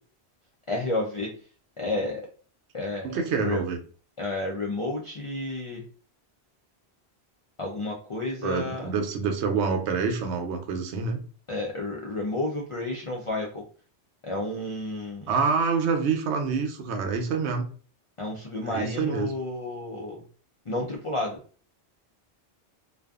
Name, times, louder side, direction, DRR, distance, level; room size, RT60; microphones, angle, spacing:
voice 1, 0.7-1.3 1.8-2.2 2.7-3.1 3.3-3.6 4.2-5.8 7.6-8.9 11.5-13.6 14.2-15.3 18.2-20.2 20.7-21.4, left 2 dB, 60° left, -2 dB, 0.3 m, -31 dB
voice 2, 3.0-3.8 8.4-11.2 15.3-17.7 18.6-19.3, right 5 dB, 85° right, 5 dB, 0.9 m, -27 dB
2.5 x 2.3 x 2.3 m, 0.40 s
omnidirectional pair, 1.1 m